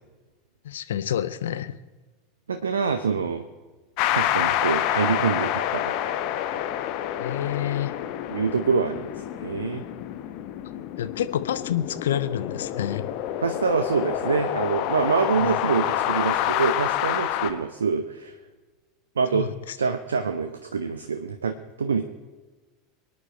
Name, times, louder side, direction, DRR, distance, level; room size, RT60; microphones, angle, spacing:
voice 1, 0.6-1.8 7.2-7.9 11.0-13.1 15.4-15.6 19.3-19.8, left 10 dB, 65° left, 13 dB, 0.7 m, -28 dB
voice 2, 2.5-3.4 4.1-5.9 8.3-9.1 9.4-9.8 13.4-18.3 19.2-19.5 19.8-22.2, right 5 dB, 75° right, 9 dB, 0.8 m, -25 dB
sound 1, 4.0-17.5, left 12 dB, 50° left, 1.0 m, -28 dB
24.5 x 9.6 x 4.4 m, 1.3 s
figure-of-eight pair, 80°, 0 cm